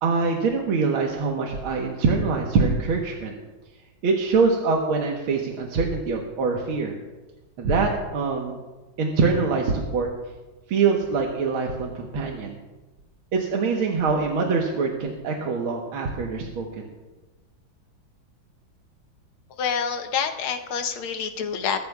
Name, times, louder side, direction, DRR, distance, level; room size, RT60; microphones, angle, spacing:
voice 1, 0.0-3.3 4.0-7.0 7.6-8.6 9.0-10.1 10.7-12.6 13.3-16.9, right 4 dB, 85° right, 0 dB, 2.0 m, -24 dB
voice 2, 19.6-21.8, left 6 dB, 90° left, 6 dB, 1.8 m, -27 dB
21.5 x 13.5 x 2.4 m, 1.2 s
omnidirectional pair, 2.2 m